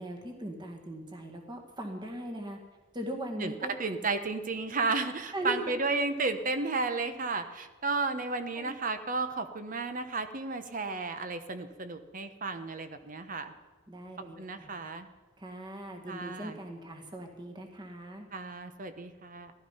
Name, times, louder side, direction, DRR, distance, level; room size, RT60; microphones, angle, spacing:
voice 1, 0.0-2.6 2.9-3.7 5.3-5.7 8.5-8.7 13.9-14.7 15.4-18.3, right 1 dB, 25° right, 2 dB, 1.8 m, -39 dB
voice 2, 3.8-13.5 14.4-15.1 16.1-16.6 18.3-19.5, right 3 dB, 45° right, 9 dB, 1.0 m, -33 dB
15.0 x 12.5 x 5.7 m, 1.3 s
head